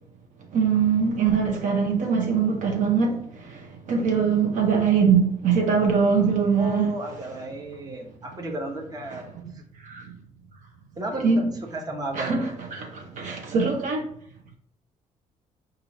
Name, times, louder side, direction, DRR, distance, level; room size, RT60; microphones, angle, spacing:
voice 1, 0.5-6.9 9.1-9.2 9.8-10.1 11.2-11.4 12.1-14.0, right 6 dB, 65° right, 0.8 m, -22 dB
voice 2, 6.5-9.3 9.5-9.6 11.0-11.3 11.7-12.4, right 1 dB, 30° right, 0.9 m, -33 dB
4.6 x 2.6 x 4.1 m
cardioid pair, 100°, 14 cm